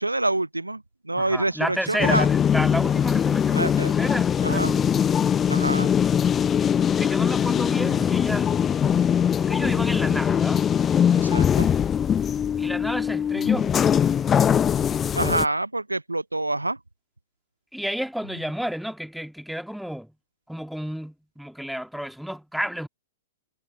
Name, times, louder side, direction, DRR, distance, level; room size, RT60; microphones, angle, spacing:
voice 1, 0.0-2.3 3.5-3.9 4.4-4.7 5.5-5.9 11.2-11.7 15.1-16.8, right 2 dB, 80° right, 0.7 m, -26 dB
voice 2, 1.1-4.9 6.9-8.5 9.4-10.7 12.6-13.7 17.7-20.1 20.5-22.9, equal, ahead, 2.0 m, -31 dB
sound 1, 2.0-15.4, left 8 dB, 20° left, 0.7 m, -21 dB
figure-of-eight pair, 105°, 0 cm